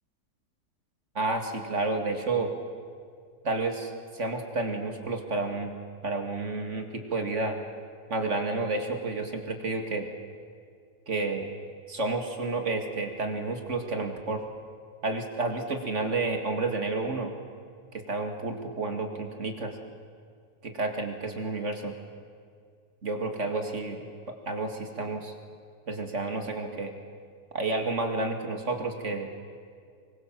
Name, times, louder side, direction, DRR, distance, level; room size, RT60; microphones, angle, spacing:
voice 1, 1.1-2.5 3.4-5.7 6.0-7.6 8.1-10.1 11.1-11.5 11.9-14.4 15.0-17.3 17.9-19.7 20.6-21.9 23.0-24.0 24.5-25.3 25.9-26.9 27.5-29.3, right 3 dB, 45° right, 5 dB, 2.5 m, -30 dB
25.5 x 23.0 x 7.5 m, 2.2 s
omnidirectional pair, 1.8 m